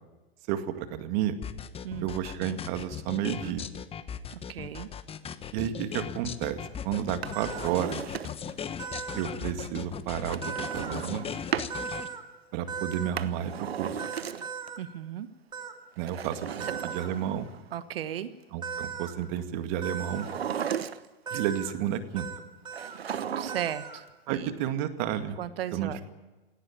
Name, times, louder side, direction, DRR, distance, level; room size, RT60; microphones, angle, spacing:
voice 1, 0.5-1.3 2.0-3.7 5.5-8.2 9.1-11.2 12.5-14.0 16.0-17.5 18.5-20.3 21.3-22.3 24.3-25.4 25.7-26.0, right 10 dB, 50° right, 8 dB, 2.1 m, -31 dB
sound 1, 1.4-12.1, left 8 dB, 20° left, 1.1 m, -38 dB
voice 2, 4.3-4.9 14.8-15.3 17.7-18.3 23.4-24.5 25.4-26.0, right 10 dB, 70° right, 12 dB, 1.4 m, -36 dB
Drawer open or close, 7.1-8.6 10.3-11.8 12.9-14.7 16.0-17.6 20.0-21.3 22.7-23.8 24.1-24.2, right 8 dB, 85° right, 1.1 m, -35 dB
sound 2, 7.3-7.7 8.8-9.3 10.4-11.0 11.7-12.2 12.7-13.1 14.0-14.8 15.5-15.7 16.6-17.1 18.6-19.1 19.8-20.3 21.3-21.7 22.2-22.4 22.6-23.0 23.5-24.0, right 6 dB, 15° right, 2.2 m, -37 dB
18.0 x 16.0 x 10.0 m, 1.2 s
hypercardioid pair, 110°, 30 cm